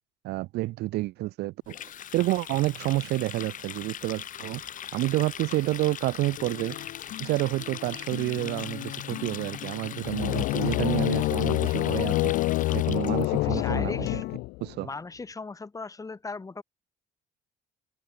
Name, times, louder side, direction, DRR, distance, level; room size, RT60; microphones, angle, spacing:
voice 1, 0.2-1.8 2.1-4.6 4.9-6.8 7.2-12.3 12.7-14.2 14.6-14.9, right 18 dB, 80° right, 0.9 m, -29 dB
Water tap faucet, 1.7-13.3, left 10 dB, 50° left, 1.5 m, -40 dB
Acoustic guitar, 6.4-14.4, left 14 dB, 70° left, 1.0 m, -39 dB
sound 1, 10.0-14.8, left 22 dB, 90° left, 0.6 m, -27 dB
voice 2, 13.4-14.2 14.8-16.6, left 4 dB, 20° left, 2.8 m, -38 dB
cardioid pair, 110°, 17 cm